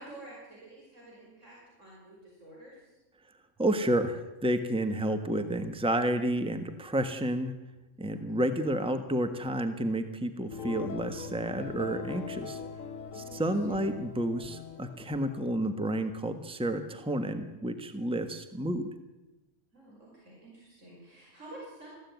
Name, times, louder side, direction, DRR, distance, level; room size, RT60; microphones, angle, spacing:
voice 1, 0.0-2.9 7.9-8.5 13.1-13.8 19.7-21.9, right 1 dB, 75° right, -4 dB, 6.0 m, -50 dB
voice 2, 3.6-7.5 8.0-12.6 13.1-18.9, right 1 dB, 5° right, 8 dB, 1.3 m, -30 dB
sound 1, 10.5-15.5, left 6 dB, 85° left, 1.3 m, -41 dB
20.5 x 15.0 x 9.4 m, 1.0 s
omnidirectional pair, 1.3 m